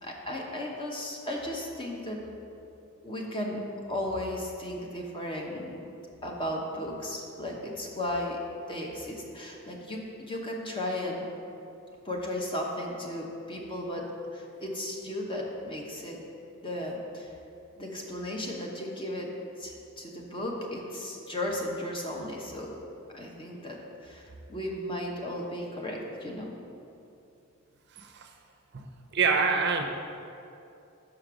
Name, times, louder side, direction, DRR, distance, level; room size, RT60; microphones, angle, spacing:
voice 1, 0.0-2.2 3.0-3.6 3.9-5.8 6.2-8.4 8.7-11.3 12.0-16.2 16.6-17.3 17.8-22.8 23.1-26.6, left 1 dB, 25° left, -1 dB, 0.9 m, -35 dB
voice 2, 27.9-28.3 28.7-28.9 29.1-29.8, right 5 dB, 55° right, 4 dB, 0.5 m, -26 dB
5.9 x 5.1 x 6.2 m, 2.7 s
head